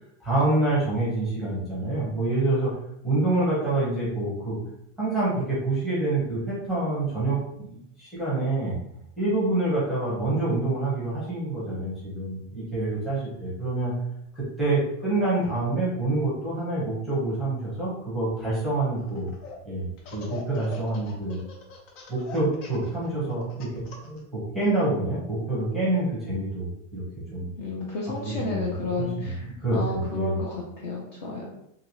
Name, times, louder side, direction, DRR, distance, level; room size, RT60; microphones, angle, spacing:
voice 1, 0.2-2.7 3.0-4.6 5.0-8.8 9.2-13.9 14.3-19.3 19.6-21.4 22.1-27.0 27.3-27.5 28.2-28.6 29.0-30.3, right 2 dB, ahead, -9 dB, 0.6 m, -27 dB
Laughter, 19.0-19.6 20.0-24.2, left 5 dB, 75° left, 0.9 m, -42 dB
voice 2, 27.6-31.5, left 3 dB, 40° left, -3 dB, 0.4 m, -32 dB
2.8 x 2.6 x 2.8 m, 0.78 s
supercardioid pair, 180°, 38 cm